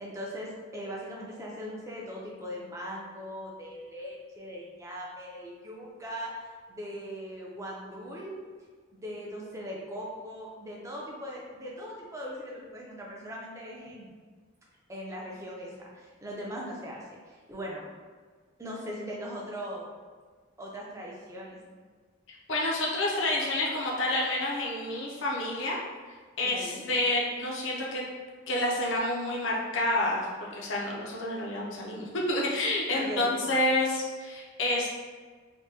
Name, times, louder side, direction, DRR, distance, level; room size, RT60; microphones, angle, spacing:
voice 1, 0.0-8.4 8.9-14.1 14.9-17.8 18.6-19.9 20.6-21.6 26.4-26.9 32.9-33.4, equal, 15° right, -3 dB, 0.5 m, -40 dB
voice 2, 22.3-25.8 26.4-28.0 28.5-34.9, left 1 dB, 65° left, -3 dB, 0.6 m, -29 dB
3.4 x 2.2 x 2.8 m, 1.5 s
head